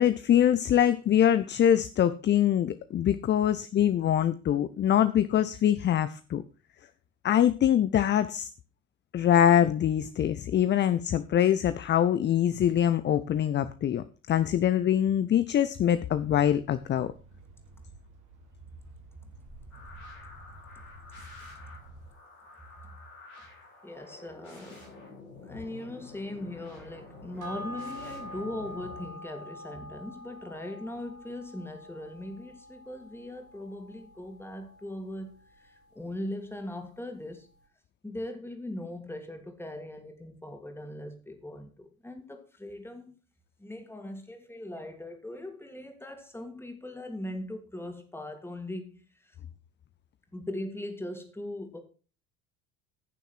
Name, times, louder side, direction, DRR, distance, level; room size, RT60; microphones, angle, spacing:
voice 1, 0.0-6.4 7.2-8.5 9.1-17.1, left 10 dB, 25° left, 0.7 m, -24 dB
sound 1, 16.0-22.1, right 1 dB, 45° right, 3.3 m, -51 dB
sound 2, 19.7-29.1, left 3 dB, 80° left, 7.4 m, -49 dB
voice 2, 23.8-24.9 25.4-37.5 38.0-43.2 43.6-49.4 50.3-51.8, left 1 dB, 5° left, 2.8 m, -40 dB
sound 3, 27.4-36.2 36.5-36.6, equal, 85° right, 2.8 m, -45 dB
15.5 x 7.0 x 4.6 m
figure-of-eight pair, 65°, 42 cm